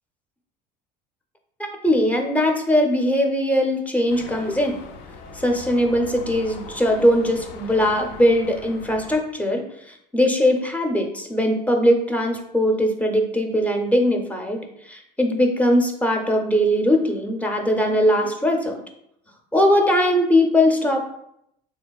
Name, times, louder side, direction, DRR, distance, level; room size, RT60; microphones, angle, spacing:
voice 1, 1.6-4.8 5.3-18.8 19.5-21.0, left 1 dB, 5° left, 3 dB, 0.5 m, -20 dB
sound 1, 4.1-9.2, left 5 dB, 70° left, 0.5 m, -40 dB
3.3 x 3.0 x 2.2 m, 0.77 s
supercardioid pair, 95°, 20 cm